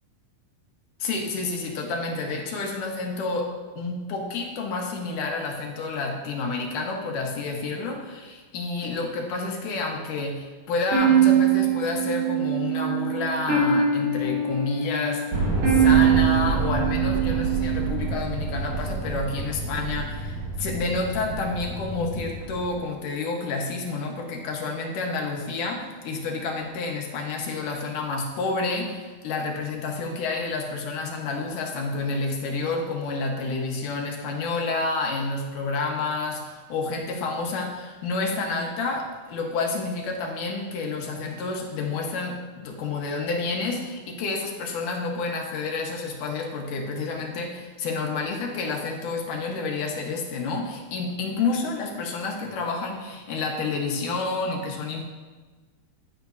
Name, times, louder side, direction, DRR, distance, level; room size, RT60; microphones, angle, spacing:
voice 1, 1.0-3.5 3.8-55.0, left 3 dB, 80° left, 0 dB, 2.9 m, -29 dB
sound 1, 10.9-18.0, right 7 dB, 80° right, 4.1 m, -22 dB
sound 2, 15.3-22.7, right 3 dB, 60° right, 3.0 m, -29 dB
14.5 x 9.6 x 2.7 m, 1.3 s
omnidirectional pair, 3.6 m